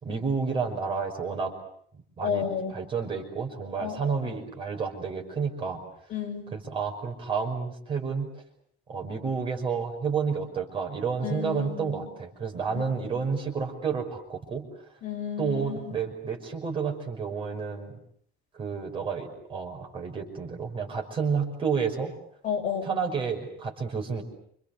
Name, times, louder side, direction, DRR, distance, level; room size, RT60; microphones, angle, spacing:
voice 1, 0.0-1.6 2.2-5.8 6.5-8.4 8.9-14.7 15.4-18.0 18.5-22.1 22.8-24.2, right 5 dB, 30° right, 2 dB, 5.7 m, -30 dB
voice 2, 2.2-2.7 3.8-4.2 6.1-6.5 11.2-12.0 12.7-12.8 15.0-16.0 22.4-22.9, left 7 dB, 45° left, 1 dB, 7.3 m, -32 dB
29.0 x 27.5 x 6.8 m, 0.66 s
cardioid pair, 180°, 18 cm